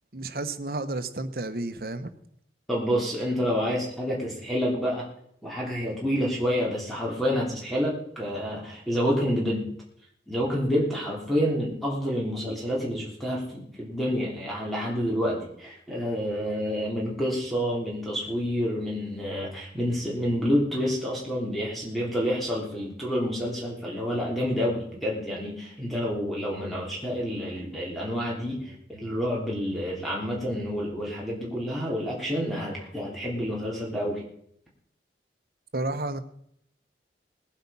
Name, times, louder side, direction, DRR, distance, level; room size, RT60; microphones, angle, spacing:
voice 1, 0.1-2.1 35.7-36.2, right 2 dB, 55° right, 1.1 m, -31 dB
voice 2, 2.7-5.1 5.4-9.7 10.3-34.2, equal, ahead, 3.2 m, -28 dB
19.5 x 8.8 x 5.6 m
head